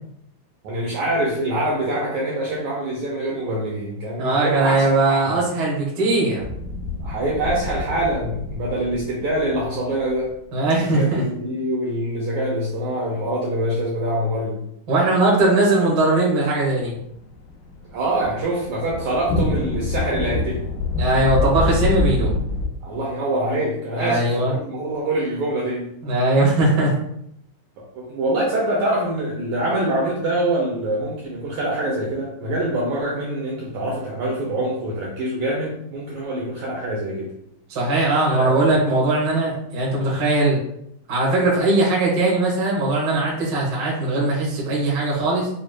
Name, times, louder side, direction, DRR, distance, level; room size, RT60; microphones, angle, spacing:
voice 1, 0.6-5.4 7.0-10.3 10.8-14.6 17.9-20.7 22.8-25.9 27.8-37.3 38.3-38.8, right 1 dB, 80° right, -4 dB, 1.7 m, -25 dB
voice 2, 4.2-6.4 10.5-11.2 14.9-17.0 21.0-22.3 24.0-24.5 26.0-26.9 37.7-40.6 41.1-45.5, right 2 dB, 50° right, -6 dB, 1.1 m, -19 dB
sound 1, 6.4-10.3 17.2-22.7, left 3 dB, 85° left, 2.5 m, -26 dB
6.4 x 2.5 x 2.2 m, 0.76 s
omnidirectional pair, 4.0 m